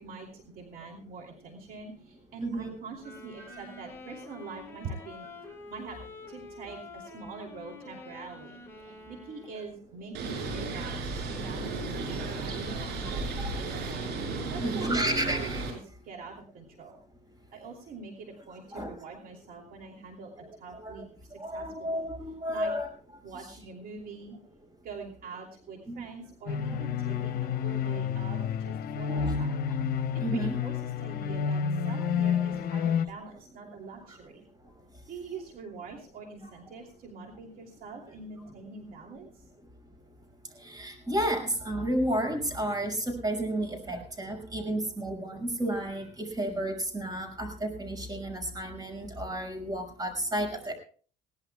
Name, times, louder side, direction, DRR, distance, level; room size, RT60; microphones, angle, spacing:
voice 1, 0.0-5.3 5.7-11.0 11.2-14.2 14.5-15.4 16.0-17.0 17.5-22.0 22.5-22.7 23.2-24.3 24.8-29.5 30.1-34.4 35.1-39.4, right 4 dB, 60° right, 1 dB, 2.9 m, -44 dB
voice 2, 2.4-2.8 3.1-3.2 3.5-3.6 13.0-13.5 14.6-15.6 18.7-18.9 20.7-21.0 21.3-22.9 25.9-26.0 26.7-26.8 29.1-29.5 30.2-30.6 34.1-34.2 34.6-34.7 40.5-50.7, right 1 dB, 25° right, 5 dB, 6.0 m, -32 dB
sound 1, 2.9-9.8, left 3 dB, 15° left, 4.9 m, -47 dB
Bird, 10.1-15.7, right 3 dB, 85° right, 7.1 m, -34 dB
sound 2, 26.5-33.1, left 7 dB, 65° left, 1.0 m, -30 dB
21.5 x 18.0 x 2.3 m, 0.42 s
cardioid pair, 110°, 17 cm